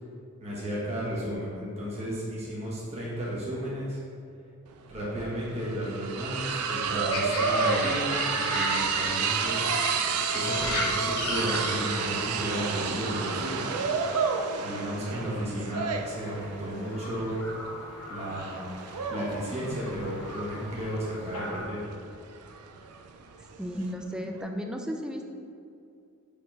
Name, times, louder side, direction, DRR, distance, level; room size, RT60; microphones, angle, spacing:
voice 1, 0.4-4.0 4.9-9.6 10.3-13.8 14.1-14.2 14.6-17.4 18.1-18.7 19.1-21.9, equal, 30° right, -7 dB, 1.4 m, -33 dB
sound 1, 4.7-4.8 5.1-23.9, right 5 dB, 85° right, 0.5 m, -31 dB
sound 2, 7.1-21.6, left 1 dB, 85° left, 1.1 m, -37 dB
voice 2, 23.6-25.3, equal, 5° right, 3 dB, 0.4 m, -34 dB
5.2 x 4.1 x 5.8 m, 2.4 s
head